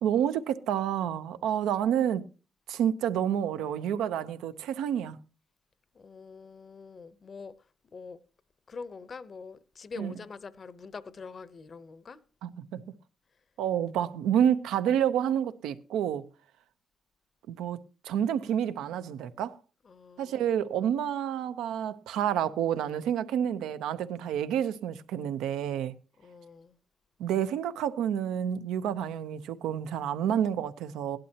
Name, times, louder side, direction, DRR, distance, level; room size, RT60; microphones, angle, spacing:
voice 1, 0.0-2.3 2.7-5.2 10.0-10.1 12.4-12.8 13.6-16.2 17.5-19.6 20.2-25.9 27.2-31.2, right 9 dB, 90° right, 0.7 m, -29 dB
voice 2, 5.9-7.6 7.9-8.2 8.7-12.2 19.8-20.6 26.2-26.7, left 4 dB, 40° left, 0.8 m, -44 dB
17.0 x 11.5 x 2.9 m
cardioid pair, 90°, 0 cm